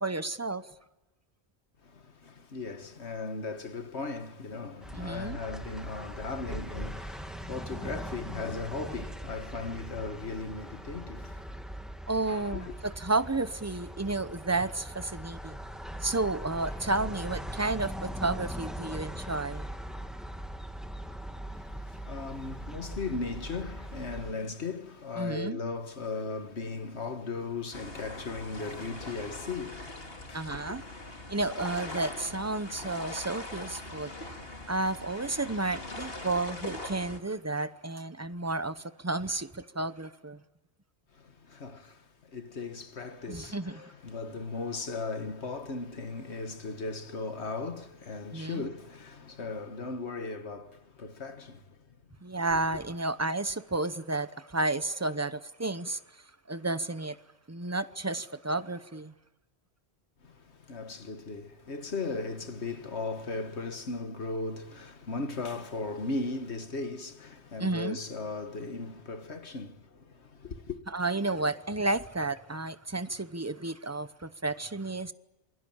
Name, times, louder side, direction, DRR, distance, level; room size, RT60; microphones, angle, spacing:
voice 1, 0.0-0.7 5.0-5.4 12.1-15.6 16.0-19.7 25.2-25.6 30.3-30.8 31.3-34.1 34.7-40.4 43.3-43.8 48.3-48.7 52.2-56.0 56.5-57.2 57.5-59.1 67.6-68.0 70.9-75.1, right 2 dB, 15° right, 0.8 m, -32 dB
voice 2, 1.8-11.5 12.3-12.8 21.5-30.8 41.1-51.8 60.2-70.8, left 3 dB, 75° left, 1.9 m, -37 dB
sound 1, 4.8-24.3, equal, ahead, 1.8 m, -40 dB
sound 2, 27.7-37.2, left 2 dB, 60° left, 3.2 m, -41 dB
28.0 x 22.0 x 8.8 m
omnidirectional pair, 1.1 m